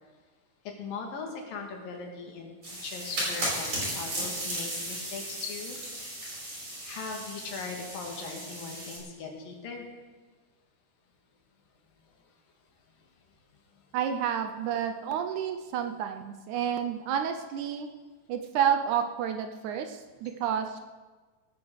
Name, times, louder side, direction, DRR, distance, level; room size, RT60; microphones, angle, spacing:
voice 1, 0.8-5.8 6.8-9.9, left 4 dB, 70° left, 2 dB, 3.7 m, -39 dB
sound 1, 2.6-9.0, right 1 dB, 45° right, 6.6 m, -35 dB
voice 2, 13.9-17.9 18.3-20.8, right 8 dB, 75° right, 7 dB, 1.9 m, -30 dB
18.0 x 9.6 x 6.4 m, 1.3 s
omnidirectional pair, 4.1 m